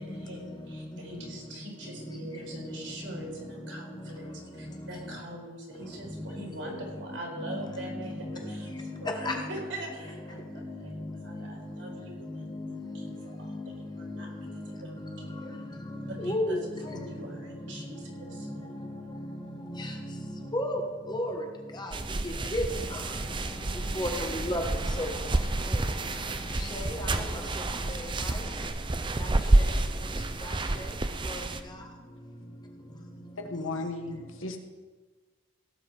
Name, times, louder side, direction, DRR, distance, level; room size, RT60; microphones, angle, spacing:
voice 1, 0.0-4.3 4.6-8.7 9.0-14.3 14.7-14.9 15.2-15.3 16.2-18.9, right 1 dB, 65° right, -2 dB, 4.0 m, -43 dB
voice 2, 2.3-4.4 4.8-5.2 6.2-6.4 7.4-9.5 10.6-11.5 11.9-12.0 12.2-13.1 13.4-13.6 14.0-14.5 14.9-15.6 15.9-17.0 17.7-17.8 18.4-18.5 18.9-19.3 19.6-20.8 21.1-21.5 21.7-21.9 22.2-22.6 22.9-23.0 23.9-24.6 25.0-25.1 26.6-27.2 27.9-28.4 29.2-29.7 30.4-30.9 31.3-31.4, left 1 dB, 20° left, 2 dB, 1.3 m, -36 dB
sound 1, 21.9-31.6, right 2 dB, 25° right, 0.6 m, -29 dB
sound 2, 22.7-28.7, equal, 5° left, 1.9 m, -43 dB
voice 3, 33.4-34.6, left 2 dB, 80° left, 5 dB, 1.5 m, -35 dB
17.0 x 8.0 x 4.9 m, 1.4 s
head